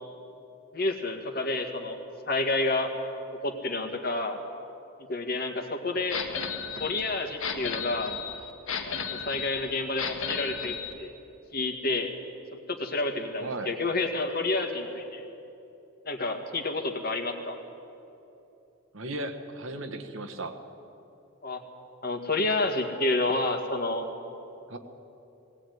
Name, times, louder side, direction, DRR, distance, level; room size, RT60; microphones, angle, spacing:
voice 1, 0.7-2.0 2.3-2.9 3.4-4.4 5.1-6.2 6.8-8.2 9.1-11.1 11.5-12.1 12.7-15.3 16.0-17.6 21.4-21.6 22.0-24.1, left 2 dB, 45° left, 5 dB, 1.9 m, -29 dB
sound 1, 6.1-10.9, left 6 dB, 70° left, 1.6 m, -34 dB
voice 2, 13.4-13.7 18.9-20.6 24.7-24.8, right 2 dB, 70° right, 7 dB, 1.4 m, -36 dB
18.5 x 18.0 x 9.4 m, 2.9 s
head